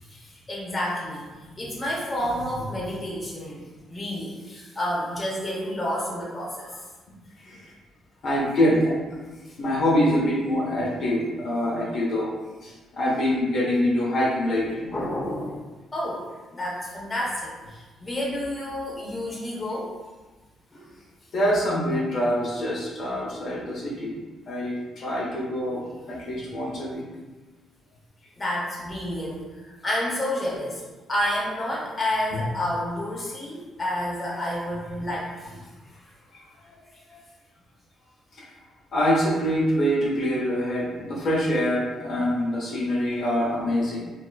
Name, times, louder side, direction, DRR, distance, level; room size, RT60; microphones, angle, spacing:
voice 1, 0.1-6.9 9.5-9.6 14.6-15.6 15.9-16.2 16.5-19.9 20.7-21.0 28.4-30.8 31.1-35.6 35.9-36.0, left 1 dB, 25° left, -6 dB, 0.8 m, -30 dB
voice 2, 7.4-7.7 8.2-9.0 9.6-12.3 12.6-14.9 21.3-24.2 24.5-25.8 26.1-27.0 36.3-36.8 37.1-37.2 38.3-38.5 38.9-44.0, equal, 60° left, -5 dB, 0.8 m, -25 dB
2.8 x 2.3 x 2.3 m, 1.3 s
cardioid pair, 90°, 0 cm